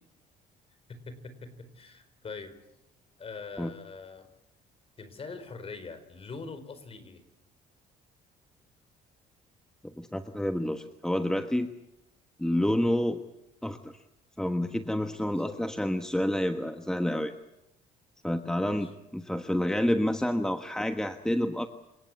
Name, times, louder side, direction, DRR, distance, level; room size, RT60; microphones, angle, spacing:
voice 1, 0.9-2.5 3.2-4.3 5.0-7.2 15.3-15.6 18.6-18.9, left 4 dB, 35° left, 11 dB, 4.5 m, -43 dB
voice 2, 9.8-11.7 12.4-13.2 13.6-13.9 14.4-17.3 18.2-21.7, left 1 dB, 5° left, 7 dB, 1.3 m, -29 dB
29.0 x 17.5 x 8.4 m, 0.87 s
cardioid pair, 110°, 17 cm